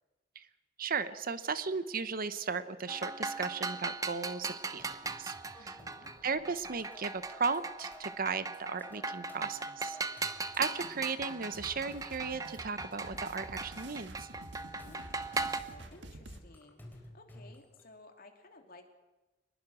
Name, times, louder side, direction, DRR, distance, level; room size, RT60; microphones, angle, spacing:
voice 1, 0.8-4.9 5.2-5.3 5.6-5.8 6.2-10.0 10.2-14.3, right 5 dB, 50° right, 13 dB, 0.9 m, -36 dB
sound 1, 2.9-15.6, right 3 dB, 20° right, 0.9 m, -39 dB
sound 2, 4.7-17.8, left 1 dB, 10° left, 4.0 m, -56 dB
voice 2, 5.6-6.1 14.8-18.9, left 2 dB, 55° left, 4 dB, 2.8 m, -57 dB
sound 3, 10.8-16.4, right 1 dB, 70° right, 1.7 m, -50 dB
24.5 x 20.5 x 6.3 m, 1.1 s
head